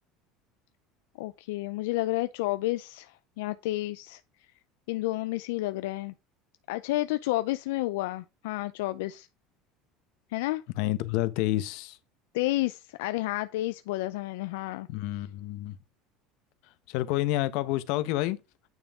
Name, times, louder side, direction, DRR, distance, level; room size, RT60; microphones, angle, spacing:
voice 1, 1.2-4.2 4.9-6.1 6.7-9.3 10.3-10.6 12.3-14.9, left 18 dB, 90° left, 0.4 m, -30 dB
voice 2, 10.8-12.0 14.9-15.7 16.9-18.4, left 16 dB, 70° left, 0.9 m, -29 dB
9.2 x 5.4 x 3.6 m
cardioid pair, 135°, 0 cm